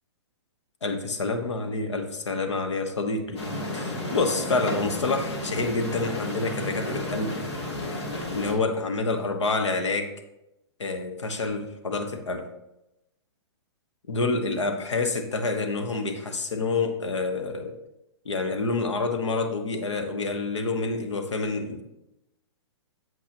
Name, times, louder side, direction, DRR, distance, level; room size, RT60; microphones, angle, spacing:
voice 1, 0.8-3.4 3.7-7.3 8.3-10.1 10.8-12.5 14.1-17.7 18.2-21.8, left 3 dB, 85° left, 6 dB, 1.2 m, -28 dB
sound 1, 3.3-8.5, left 1 dB, 70° left, 2.5 m, -32 dB
8.6 x 7.3 x 2.9 m, 0.90 s
hypercardioid pair, 135°, 15 cm